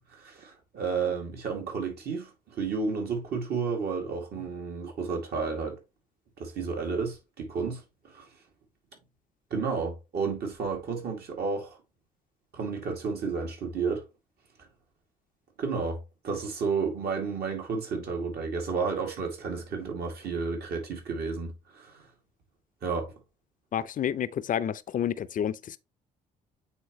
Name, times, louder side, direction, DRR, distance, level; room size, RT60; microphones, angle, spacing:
voice 1, 0.1-5.8 6.4-8.2 9.5-11.8 12.5-14.0 15.6-22.0 22.8-23.1, right 5 dB, 55° right, 2.3 m, -32 dB
voice 2, 23.7-25.8, left 9 dB, 45° left, 0.6 m, -29 dB
8.7 x 3.9 x 3.1 m
hypercardioid pair, 50°, 20 cm